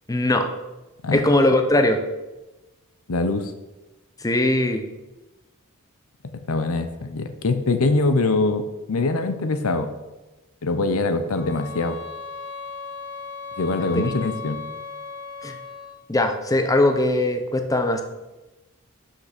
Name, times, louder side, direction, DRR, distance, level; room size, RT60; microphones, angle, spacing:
voice 1, 0.1-0.5 1.1-2.0 4.2-4.8 13.9-14.0 15.4-15.5 16.1-18.0, left 1 dB, 15° left, 6 dB, 0.6 m, -20 dB
voice 2, 3.1-3.5 6.5-8.6 8.9-9.9 10.6-12.0 13.6-14.6, left 3 dB, 70° left, 9 dB, 0.7 m, -23 dB
sound 1, 11.3-16.1, left 5 dB, 70° right, 1.7 m, -36 dB
5.8 x 5.8 x 5.9 m, 1.1 s
head